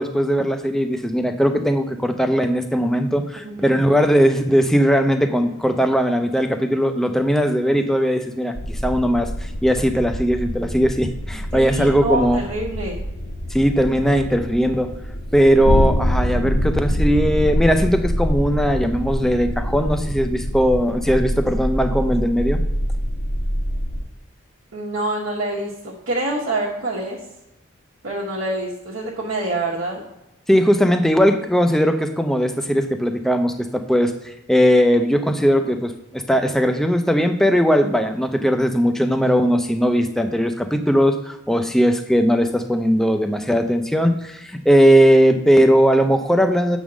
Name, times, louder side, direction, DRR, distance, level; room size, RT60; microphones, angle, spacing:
voice 1, 0.0-12.4 13.5-14.9 15.3-22.6 30.5-46.8, equal, ahead, 6 dB, 0.4 m, -19 dB
voice 2, 3.4-3.8 11.5-13.0 24.7-27.2 28.0-30.0, right 2 dB, 80° right, -5 dB, 1.1 m, -26 dB
sound 1, 8.5-24.0, equal, 70° left, 1.3 m, -25 dB
7.3 x 3.6 x 6.1 m, 0.91 s
head